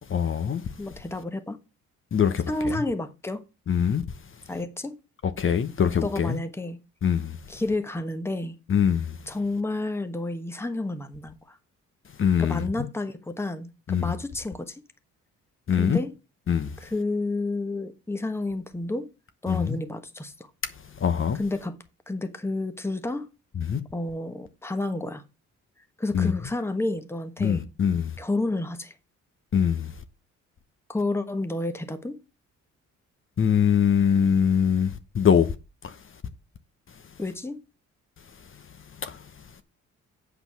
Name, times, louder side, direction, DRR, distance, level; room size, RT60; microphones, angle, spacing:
voice 1, 0.1-0.6 2.1-2.4 3.7-4.0 5.4-6.4 7.0-7.4 8.7-9.1 12.2-12.6 13.9-14.1 15.7-16.0 16.5-16.7 19.5-19.8 21.0-21.4 23.6-23.8 26.1-26.3 27.4-28.1 29.5-29.9 33.4-35.5 35.8-35.9 39.0-39.2, left 8 dB, 45° left, 1.0 m, -23 dB
voice 2, 0.8-1.6 2.5-3.4 4.5-5.0 6.0-6.8 7.5-8.6 9.3-11.6 12.4-14.8 15.7-16.2 16.8-19.1 19.4-20.5 21.3-21.7 22.1-23.3 23.9-25.2 26.0-27.7 28.2-28.9 30.9-32.2 37.2-37.6, left 2 dB, 10° left, 1.2 m, -30 dB
8.3 x 5.1 x 5.9 m
cardioid pair, 90°, 30 cm